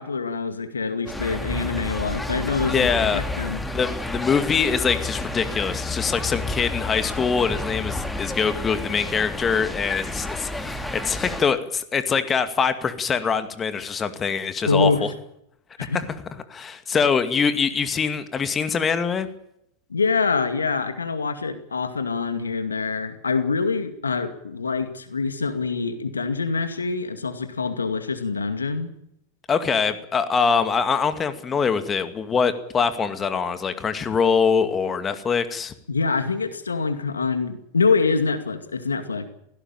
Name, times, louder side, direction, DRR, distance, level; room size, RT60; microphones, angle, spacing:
voice 1, 0.0-3.6 14.7-15.1 15.8-16.0 19.9-28.9 35.9-39.3, left 4 dB, 85° left, 10 dB, 2.2 m, -25 dB
sound 1, 1.1-11.4, left 2 dB, 5° left, 2.4 m, -30 dB
voice 2, 2.7-3.3 3.7-15.1 15.8-16.1 16.5-19.3 29.5-35.7, left 6 dB, 25° left, 10 dB, 2.3 m, -23 dB
18.0 x 16.5 x 9.0 m, 0.75 s
hypercardioid pair, 95°, 0 cm